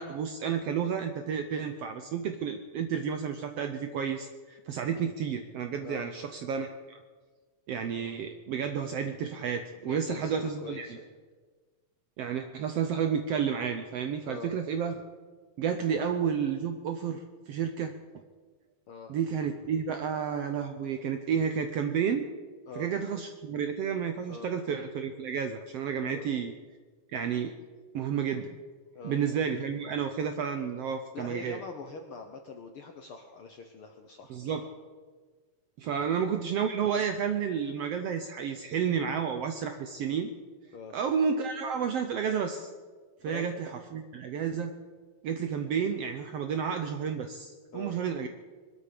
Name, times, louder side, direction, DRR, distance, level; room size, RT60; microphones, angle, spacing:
voice 1, 0.0-7.0 7.7-11.0 12.2-15.0 15.6-17.9 19.1-22.3 22.8-26.5 27.1-27.5 27.9-28.6 29.0-31.6 34.3-34.7 35.8-40.3 40.9-42.7 43.2-44.7 45.2-48.3, right 7 dB, 70° right, 7 dB, 1.5 m, -31 dB
voice 2, 9.8-11.1 14.2-14.6 18.9-19.1 22.7-22.9 24.3-24.5 26.0-26.3 28.9-29.2 31.1-34.7 35.9-36.1 40.7-41.0 43.2-43.5 47.7-48.0, left 4 dB, 70° left, 5 dB, 1.3 m, -43 dB
22.0 x 13.0 x 5.1 m, 1.4 s
omnidirectional pair, 3.7 m